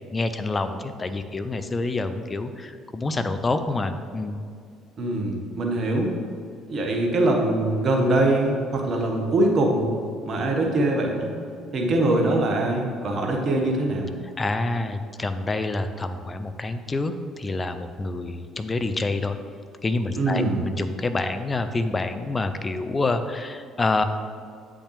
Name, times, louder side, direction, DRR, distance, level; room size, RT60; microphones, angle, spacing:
voice 1, 0.1-4.4 14.4-19.4 19.8-24.0, left 2 dB, 25° left, 9 dB, 0.5 m, -27 dB
voice 2, 5.0-6.1 6.7-9.9 10.2-11.3 11.7-14.1 20.2-20.7, right 2 dB, 45° right, 1 dB, 1.2 m, -23 dB
8.1 x 5.7 x 3.2 m, 2.4 s
figure-of-eight pair, 50°, 0 cm